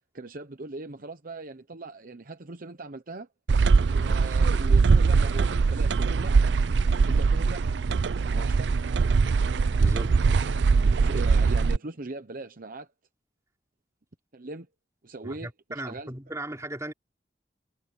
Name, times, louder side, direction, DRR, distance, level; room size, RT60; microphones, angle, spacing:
voice 1, 0.1-3.3 3.9-6.4 7.1-7.6 8.3-8.8 10.4-12.9 14.3-14.7 15.0-16.1, right 2 dB, 50° right, 1.0 m, -39 dB
sound 1, 3.5-11.8, right 4 dB, 65° right, 0.5 m, -22 dB
voice 2, 9.8-10.2 15.2-16.9, right 1 dB, 15° right, 4.2 m, -36 dB
head